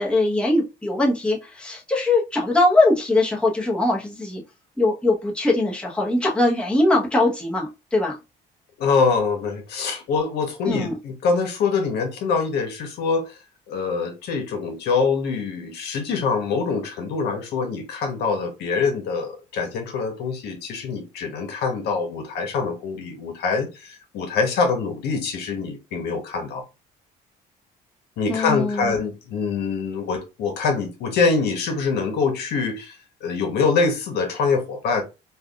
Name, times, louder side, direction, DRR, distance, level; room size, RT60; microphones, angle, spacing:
voice 1, 0.0-4.4 4.8-8.2 10.7-10.9 28.3-29.0, left 2 dB, 5° left, 0.9 m, -21 dB
voice 2, 8.8-13.4 13.7-26.6 28.2-35.0, left 4 dB, 75° left, 0.9 m, -24 dB
3.4 x 2.3 x 2.3 m
cardioid pair, 110°, 17 cm